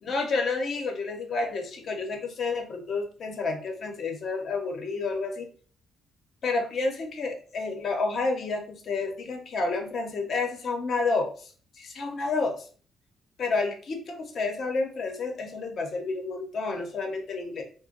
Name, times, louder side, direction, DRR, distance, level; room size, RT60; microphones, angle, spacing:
voice 1, 0.0-5.5 6.4-11.3 11.8-12.6 13.4-17.6, left 3 dB, 60° left, 4 dB, 0.8 m, -30 dB
2.5 x 2.1 x 3.9 m, 0.42 s
cardioid pair, 90°, 0 cm